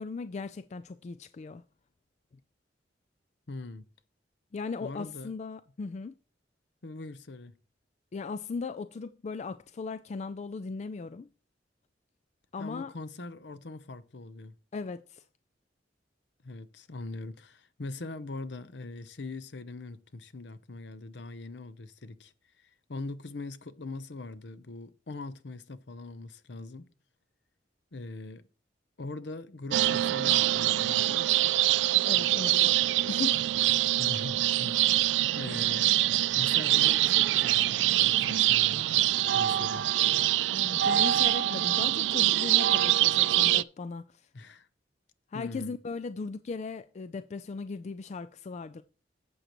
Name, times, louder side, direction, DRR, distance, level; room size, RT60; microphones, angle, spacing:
voice 1, 0.0-1.6 4.5-6.1 8.1-11.3 12.5-12.9 14.7-15.2 32.0-33.9 40.5-44.2 45.3-48.8, left 4 dB, 40° left, 0.3 m, -38 dB
voice 2, 3.5-3.9 4.8-5.3 6.8-7.5 12.6-14.5 16.4-26.9 27.9-28.5 29.0-31.5 34.0-36.0 36.3-39.0 39.3-39.9 44.3-44.7 45.3-45.7, left 3 dB, 70° left, 0.8 m, -42 dB
sound 1, 29.7-43.6, right 14 dB, 85° right, 0.3 m, -24 dB
11.5 x 7.8 x 3.0 m
head